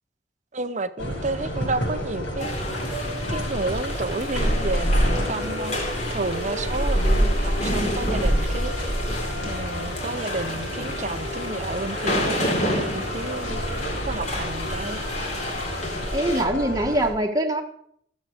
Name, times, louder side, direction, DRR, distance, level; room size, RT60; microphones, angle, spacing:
voice 1, 0.5-2.6 3.0-5.8 6.1-8.9 9.4-13.6 14.1-15.0, right 3 dB, 40° right, 0.7 m, -31 dB
sound 1, 1.0-17.1, equal, 75° left, 5.8 m, -28 dB
sound 2, 2.4-16.4, left 1 dB, 40° left, 3.0 m, -31 dB
voice 2, 16.1-17.6, right 1 dB, 20° right, 1.4 m, -23 dB
15.0 x 7.4 x 6.5 m
head